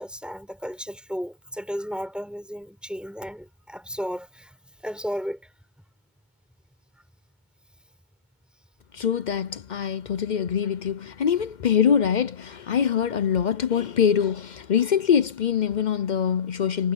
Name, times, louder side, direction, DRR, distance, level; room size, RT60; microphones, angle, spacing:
voice 1, 0.0-5.5, equal, ahead, 7.0 m, -34 dB
voice 2, 8.9-16.9, left 8 dB, 50° left, 0.6 m, -24 dB
omnidirectional pair, 1.1 m